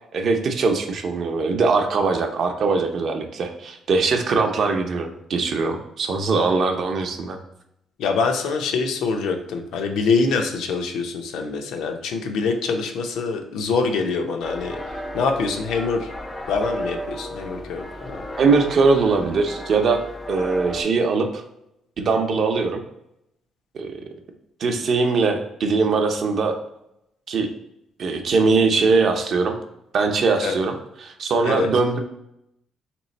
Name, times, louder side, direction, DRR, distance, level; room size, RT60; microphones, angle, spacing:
voice 1, 0.1-7.4 18.4-20.0 20.3-21.4 22.0-22.8 23.7-23.9 24.6-26.6 27.3-27.5 28.0-29.6 29.9-32.0, right 4 dB, 45° right, 5 dB, 0.5 m, -21 dB
voice 2, 8.0-14.8 15.1-16.1 16.5-18.2 30.4-30.5 31.4-31.7, left 4 dB, 85° left, 4 dB, 0.5 m, -24 dB
sound 1, 14.4-20.8, equal, 10° left, 0.4 m, -34 dB
3.2 x 3.0 x 4.0 m, 0.80 s
cardioid pair, 160°, 0 cm